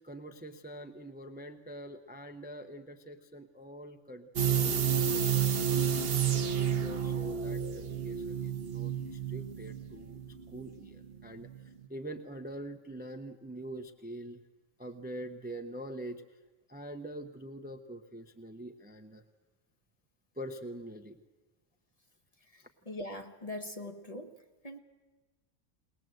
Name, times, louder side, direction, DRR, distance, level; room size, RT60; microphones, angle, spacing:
voice 1, 0.0-14.4 14.8-16.4 16.7-19.2 20.3-21.2 22.6-22.7, right 1 dB, 10° right, 6 dB, 0.7 m, -45 dB
sound 1, 4.4-11.2 11.5-11.6, right 8 dB, 50° right, 1.0 m, -30 dB
voice 2, 22.5-24.8, left 1 dB, 30° left, 5 dB, 1.1 m, -42 dB
21.5 x 20.0 x 7.8 m, 1.2 s
omnidirectional pair, 1.4 m